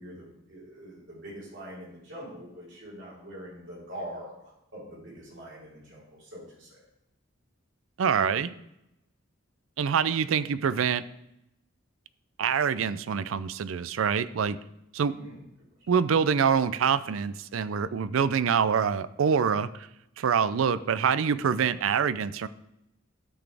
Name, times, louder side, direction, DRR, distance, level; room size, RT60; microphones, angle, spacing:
voice 1, 0.0-6.8 15.1-15.4, equal, 60° right, -6 dB, 3.8 m, -44 dB
voice 2, 8.0-8.5 9.8-11.0 12.4-14.6 14.9-15.1 15.9-19.9 20.2-22.5, right 7 dB, 75° right, 15 dB, 0.4 m, -25 dB
12.5 x 6.1 x 3.4 m, 0.84 s
head